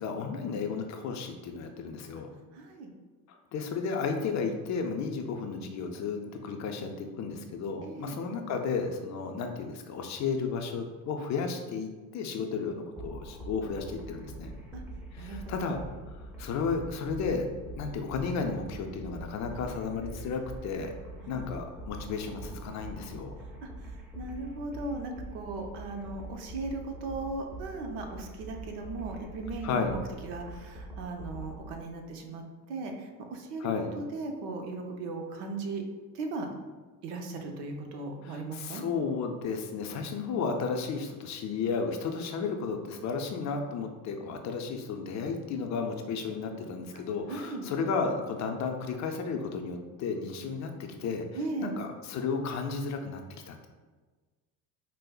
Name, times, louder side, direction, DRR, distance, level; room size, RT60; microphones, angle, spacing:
voice 1, 0.0-2.3 3.3-14.6 15.1-15.8 16.1-17.5 17.7-20.9 21.3-23.4 29.6-29.9 33.6-33.9 38.2-53.2 53.5-53.7, left 5 dB, 45° left, 4 dB, 0.5 m, -33 dB
voice 2, 2.5-2.9 7.8-8.2 14.7-14.8 15.2-15.7 21.2-21.4 23.6-23.7 24.1-35.8 36.1-36.5 37.0-38.8 46.9-47.0 47.3-47.7 51.4-51.7, right 3 dB, 70° right, 3 dB, 0.7 m, -37 dB
sound 1, 13.0-31.8, right 1 dB, 5° right, 0.7 m, -44 dB
5.1 x 2.0 x 2.3 m, 1.3 s
supercardioid pair, 85°, 41 cm